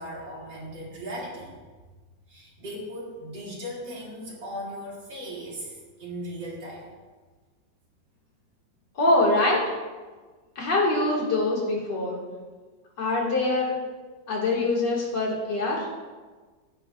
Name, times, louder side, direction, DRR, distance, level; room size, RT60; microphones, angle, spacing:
voice 1, 0.0-1.5 2.3-6.9, equal, 75° right, -5 dB, 3.3 m, -37 dB
voice 2, 9.0-9.6 10.6-12.2 13.0-13.7 14.3-15.9, left 2 dB, 65° left, -4 dB, 2.8 m, -24 dB
15.0 x 9.1 x 2.5 m, 1.4 s
omnidirectional pair, 2.0 m